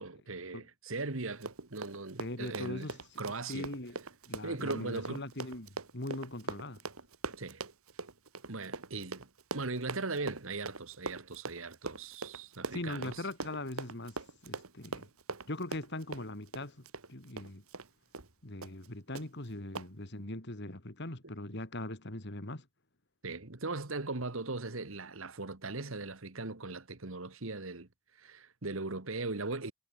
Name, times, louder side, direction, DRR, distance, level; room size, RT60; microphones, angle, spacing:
voice 1, 0.0-2.9 3.2-3.7 4.4-5.3 7.4-7.6 8.5-9.2 9.5-13.2 23.2-27.9 28.2-29.7, right 3 dB, 70° right, 1.8 m, -39 dB
Run, 1.3-17.9 18.1-18.3 18.6-18.9 19.1-19.3 19.7-19.9, right 3 dB, 85° right, 2.0 m, -42 dB
voice 2, 2.2-3.0 3.5-4.0 4.3-6.8 12.7-14.2 14.4-15.1 15.5-17.6 18.4-22.7, left 1 dB, 55° left, 2.8 m, -41 dB
head